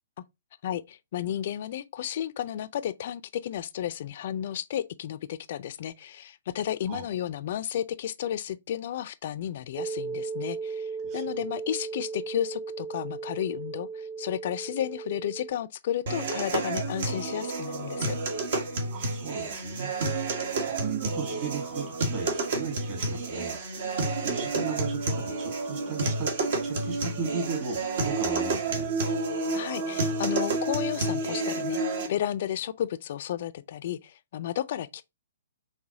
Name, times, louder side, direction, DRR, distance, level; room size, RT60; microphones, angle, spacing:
voice 1, 0.6-18.2 29.5-31.8 32.1-35.0, left 11 dB, 50° left, 0.4 m, -33 dB
sound 1, 9.8-15.5, right 5 dB, 5° right, 0.4 m, -36 dB
sound 2, 16.1-32.1, right 3 dB, 55° right, 1.3 m, -30 dB
voice 2, 18.9-20.4 20.7-26.3 26.6-28.9, right 5 dB, 35° right, 2.4 m, -36 dB
4.9 x 3.3 x 2.7 m
figure-of-eight pair, 120°, 0 cm